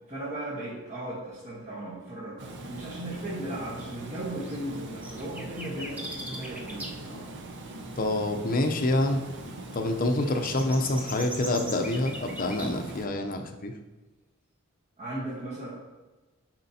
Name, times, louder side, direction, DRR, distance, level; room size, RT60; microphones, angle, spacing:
voice 1, 0.1-7.3 15.0-15.7, right 1 dB, 35° right, -7 dB, 1.2 m, -37 dB
Water, 2.4-13.1, right 2 dB, 55° right, 0.7 m, -41 dB
sound 1, 4.4-4.6 5.0-6.9 7.3-7.4 7.8-7.9 8.2-8.3 8.5-8.7 9.7-12.7, equal, 10° right, 0.7 m, -40 dB
voice 2, 8.0-9.2 9.7-13.7, left 1 dB, 40° left, 5 dB, 0.6 m, -27 dB
10.5 x 4.4 x 2.8 m, 1.2 s
head